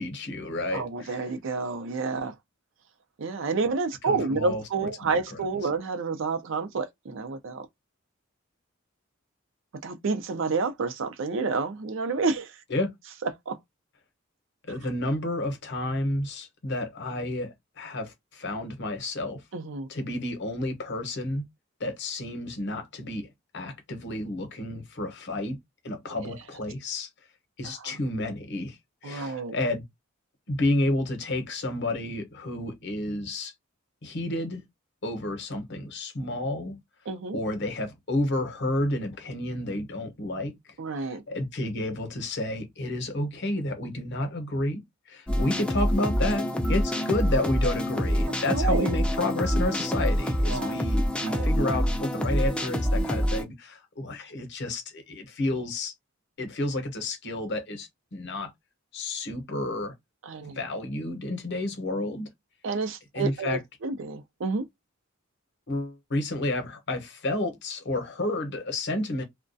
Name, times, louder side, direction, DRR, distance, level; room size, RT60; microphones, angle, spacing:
voice 1, 0.0-1.3 4.0-5.4 12.7-12.9 14.7-19.4 19.9-21.4 21.8-23.3 23.5-25.6 25.8-27.1 27.6-28.8 29.0-29.8 30.5-33.5 34.0-34.6 35.0-36.8 37.3-40.5 41.0-44.8 45.1-55.9 56.4-58.5 58.9-59.9 60.4-62.3 63.1-63.6 65.7-69.2, left 1 dB, 60° left, 0.8 m, -31 dB
voice 2, 0.7-2.3 3.2-7.6 9.8-12.5 13.5-13.6 19.5-19.9 27.6-28.0 29.0-29.5 37.1-37.4 40.8-41.2 48.5-48.9 50.5-50.7 51.3-51.5 60.3-60.6 62.6-64.6, right 4 dB, 70° right, 0.5 m, -29 dB
sound 1, 45.3-53.4, equal, 5° left, 0.4 m, -26 dB
2.3 x 2.1 x 2.6 m
head